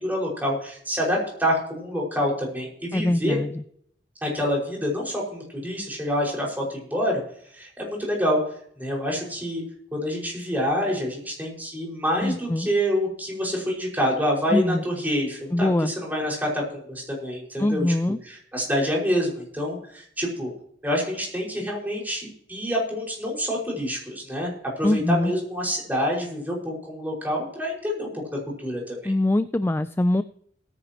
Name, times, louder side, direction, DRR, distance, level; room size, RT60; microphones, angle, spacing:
voice 1, 0.0-3.4 4.2-7.2 7.5-8.4 8.8-9.6 9.9-17.9 18.2-20.5 20.8-28.1 28.6-29.1, equal, 10° right, -3 dB, 5.5 m, -27 dB
voice 2, 2.9-3.6 12.2-12.7 14.5-14.8 15.5-15.9 17.6-18.2 24.8-25.3 29.0-30.2, left 1 dB, 15° left, 12 dB, 0.3 m, -23 dB
19.5 x 10.0 x 3.0 m, 0.63 s
head